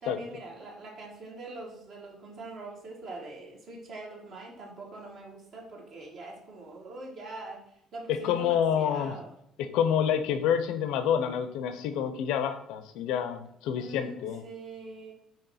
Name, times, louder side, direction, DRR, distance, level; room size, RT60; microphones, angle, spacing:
voice 1, 0.0-7.6 7.9-9.3 13.7-15.1, right 2 dB, 45° right, -1 dB, 1.5 m, -43 dB
voice 2, 8.1-9.2 9.6-14.4, left 8 dB, 80° left, 10 dB, 0.7 m, -28 dB
9.0 x 3.1 x 5.6 m, 0.73 s
cardioid pair, 170°, 0 cm